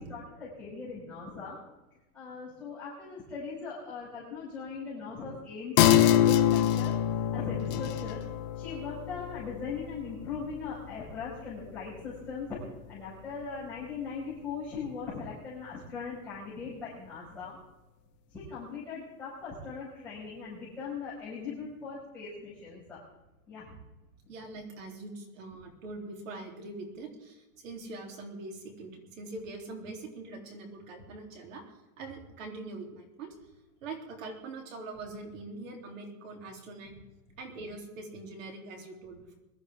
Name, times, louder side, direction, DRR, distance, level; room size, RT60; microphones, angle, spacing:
voice 1, 0.0-1.6 2.1-8.2 8.5-12.5 12.9-17.6 18.3-23.0 23.5-23.7, left 5 dB, 5° left, -12 dB, 5.4 m, -40 dB
sound 1, 5.8-12.8 13.2-13.3, left 11 dB, 30° left, 0.7 m, -27 dB
voice 2, 24.3-31.6 32.0-33.3 33.8-36.9 37.4-39.4, right 3 dB, 55° right, 2 dB, 3.5 m, -43 dB
22.0 x 12.5 x 3.7 m, 1.0 s
supercardioid pair, 180°, 45 cm